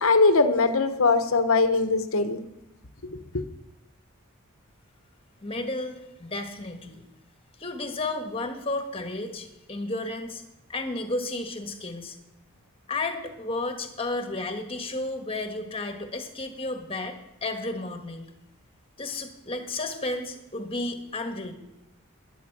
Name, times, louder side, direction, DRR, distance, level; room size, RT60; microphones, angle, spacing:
voice 1, 0.0-2.4 3.3-3.4, left 3 dB, 70° left, 9 dB, 1.1 m, -21 dB
voice 2, 5.4-7.0 7.6-10.4 10.7-12.2 12.9-18.3 19.0-21.5, left 2 dB, 25° left, 5 dB, 1.5 m, -32 dB
14.5 x 10.0 x 6.1 m, 0.91 s
head